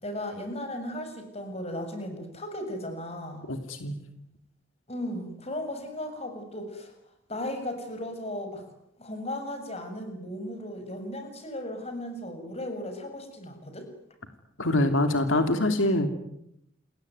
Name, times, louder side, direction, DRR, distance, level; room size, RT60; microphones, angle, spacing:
voice 1, 0.0-3.4 4.9-6.9 7.3-8.7 9.0-13.9, left 1 dB, 30° left, 7 dB, 7.1 m, -36 dB
voice 2, 3.5-4.0 14.6-16.1, left 1 dB, 85° left, 7 dB, 2.9 m, -24 dB
28.5 x 21.5 x 9.5 m, 0.79 s
head